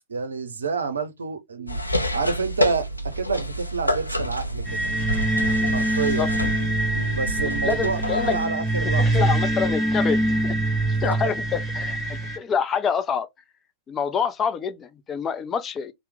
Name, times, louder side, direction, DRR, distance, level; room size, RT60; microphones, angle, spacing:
voice 1, 0.1-1.8 2.1-2.9 3.2-4.6 5.7-6.3 7.1-8.0 8.3-9.3 11.0-11.3, right 4 dB, 75° right, 0.5 m, -28 dB
sound 1, 1.7-8.5, equal, 85° left, 0.4 m, -28 dB
sound 2, 4.7-12.4, right 1 dB, 5° right, 1.2 m, -24 dB
voice 2, 7.4-8.4 8.8-10.6 10.9-13.3 13.9-15.9, left 7 dB, 25° left, 0.5 m, -27 dB
2.9 x 2.0 x 3.4 m
figure-of-eight pair, 90°, 0 cm